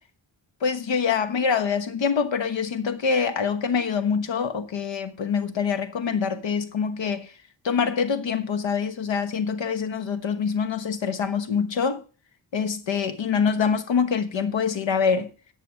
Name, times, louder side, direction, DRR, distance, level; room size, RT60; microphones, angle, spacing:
voice 1, 0.6-7.3 7.6-12.0 12.5-15.3, left 6 dB, 80° left, 1.3 m, -25 dB
10.5 x 7.0 x 6.4 m
cardioid pair, 80°, 44 cm